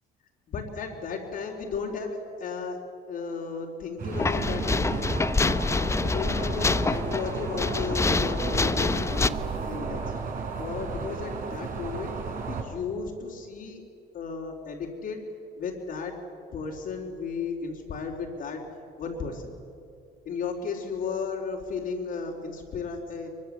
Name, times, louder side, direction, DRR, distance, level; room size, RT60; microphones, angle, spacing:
voice 1, 0.5-2.8 3.1-5.2 6.0-9.4 9.7-10.0 10.5-12.1 12.5-13.8 14.1-15.2 15.6-16.1 16.5-18.6 19.0-19.5 20.3-23.3, left 5 dB, 65° left, -5 dB, 3.9 m, -34 dB
sound 1, 4.0-12.6, right 5 dB, 55° right, 4.1 m, -33 dB
sound 2, 4.1-9.3, left 3 dB, 15° left, 0.7 m, -26 dB
24.0 x 23.5 x 8.4 m, 2.5 s
cardioid pair, 110°, 17 cm